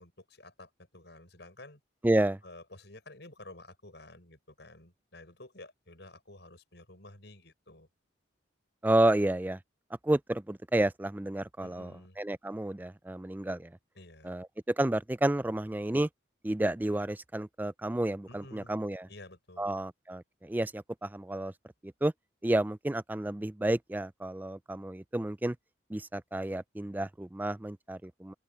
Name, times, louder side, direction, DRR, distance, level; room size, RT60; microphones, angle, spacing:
voice 1, 0.0-1.8 2.4-7.9 11.6-12.2 13.9-14.3 18.3-18.8 19.1-19.8, left 2 dB, 60° left, 6.8 m, -51 dB
voice 2, 2.0-2.4 8.8-9.6 10.0-13.7 14.2-16.1 16.4-19.1 19.6-21.5 21.8-22.1 22.4-25.6 25.9-28.3, right 1 dB, 10° right, 0.3 m, -30 dB
open air
head